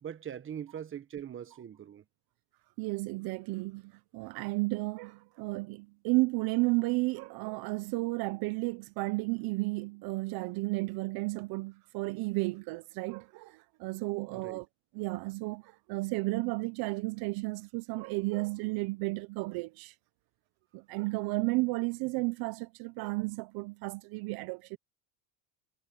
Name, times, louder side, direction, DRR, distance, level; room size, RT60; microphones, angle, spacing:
voice 1, 0.0-2.0 14.3-14.6, right 9 dB, 30° right, 1.4 m, -42 dB
voice 2, 2.8-14.7 14.9-19.9 20.7-24.8, right 24 dB, 55° right, 1.1 m, -33 dB
supercardioid pair, 105°, 42 cm